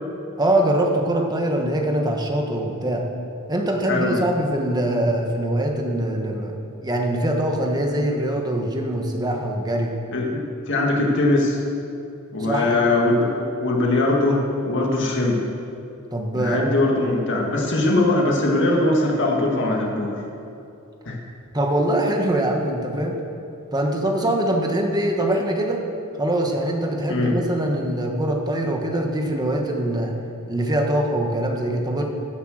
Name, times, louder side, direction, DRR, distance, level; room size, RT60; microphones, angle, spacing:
voice 1, 0.4-3.0 3.5-6.6 6.8-9.9 12.4-12.8 16.1-16.7 21.5-23.2 23.7-25.8 26.2-30.1 30.5-32.0, right 1 dB, 20° right, 1 dB, 1.4 m, -23 dB
voice 2, 3.9-4.3 10.1-11.6 12.3-15.4 16.3-20.2 21.1-21.2 27.1-27.4, left 2 dB, 55° left, -1 dB, 2.0 m, -21 dB
15.5 x 7.8 x 6.5 m, 2.7 s
head